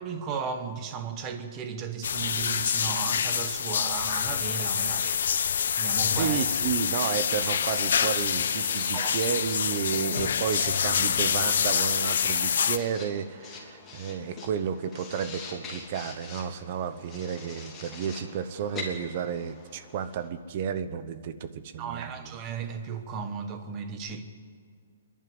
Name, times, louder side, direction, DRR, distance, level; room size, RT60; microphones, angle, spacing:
voice 1, 0.0-5.3 5.8-6.4 8.2-8.3 8.9-9.2 21.8-24.2, right 6 dB, 20° right, 7 dB, 1.5 m, -35 dB
sound 1, 2.0-12.8, left 7 dB, 60° left, 1.0 m, -26 dB
voice 2, 6.1-22.3, right 8 dB, 35° right, 12 dB, 1.0 m, -32 dB
Writing, 7.0-20.3, left 3 dB, 10° left, 3.0 m, -44 dB
26.5 x 11.0 x 9.7 m, 2.1 s
hypercardioid pair, 170°, 0 cm